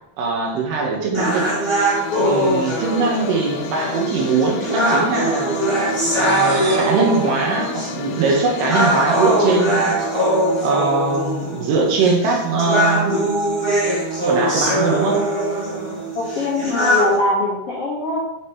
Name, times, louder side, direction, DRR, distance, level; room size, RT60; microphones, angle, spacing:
voice 1, 0.2-1.5 2.2-5.6 6.2-10.0 10.6-13.2 14.2-15.2, right 4 dB, 85° right, 0 dB, 3.1 m, -21 dB
sound 1, 1.1-17.1, right 1 dB, 15° right, 0.8 m, -21 dB
sound 2, 1.4-11.6, left 6 dB, 90° left, 2.1 m, -32 dB
sound 3, 6.0-8.6, right 2 dB, 60° right, 2.3 m, -33 dB
voice 2, 16.1-18.2, left 2 dB, 70° left, -8 dB, 1.4 m, -22 dB
7.3 x 5.0 x 2.9 m, 0.96 s
omnidirectional pair, 4.7 m